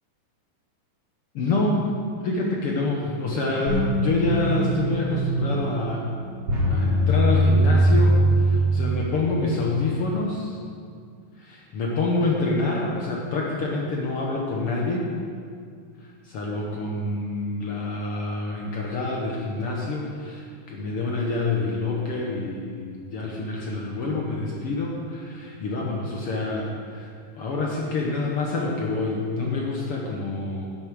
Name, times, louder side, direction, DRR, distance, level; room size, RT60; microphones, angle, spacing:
voice 1, 1.3-1.9 2.1-6.2 6.7-10.6 11.4-15.1 16.0-30.7, left 3 dB, 65° left, -2 dB, 1.5 m, -27 dB
sound 1, 3.7-9.3, right 1 dB, 50° right, 3.2 m, -21 dB
10.5 x 8.0 x 6.3 m, 2.2 s
omnidirectional pair, 3.8 m